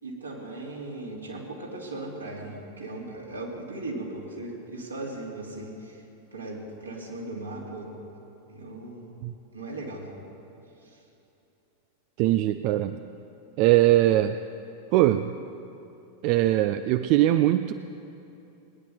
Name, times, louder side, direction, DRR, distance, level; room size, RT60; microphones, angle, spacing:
voice 1, 0.0-6.0 6.3-7.9 8.5-9.2 9.5-10.2 10.8-11.0 12.4-12.5, right 2 dB, 80° right, -4 dB, 3.2 m, -38 dB
voice 2, 12.2-13.0 13.6-14.4 14.9-15.3 16.2-17.7, right 14 dB, 45° right, 11 dB, 0.4 m, -21 dB
19.5 x 10.0 x 7.0 m, 2.9 s
figure-of-eight pair, 90°, 0 cm